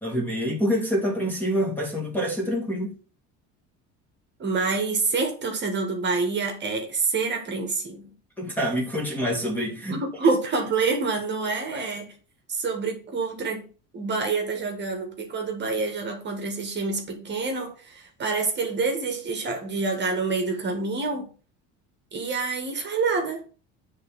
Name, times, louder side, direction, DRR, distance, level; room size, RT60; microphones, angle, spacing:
voice 1, 0.0-3.0 8.4-10.0 11.7-11.8, equal, 5° left, 1.6 m, -26 dB
voice 2, 4.4-8.1 9.9-12.1 12.5-13.6 13.9-21.3 22.1-23.4, right 4 dB, 30° right, 1.5 m, -27 dB
8.1 x 3.6 x 5.6 m
cardioid pair, 145°, 34 cm